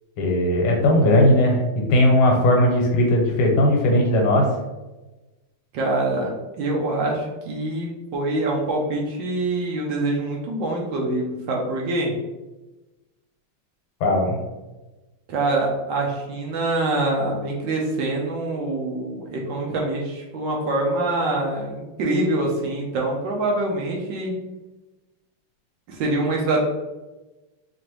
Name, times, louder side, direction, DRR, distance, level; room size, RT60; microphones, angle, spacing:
voice 1, 0.2-4.5 14.0-14.4, left 1 dB, 90° left, 0 dB, 1.8 m, -18 dB
voice 2, 5.7-12.1 15.3-24.3 25.9-26.6, right 2 dB, 70° right, -2 dB, 1.3 m, -25 dB
4.9 x 2.5 x 3.0 m, 1.1 s
omnidirectional pair, 2.4 m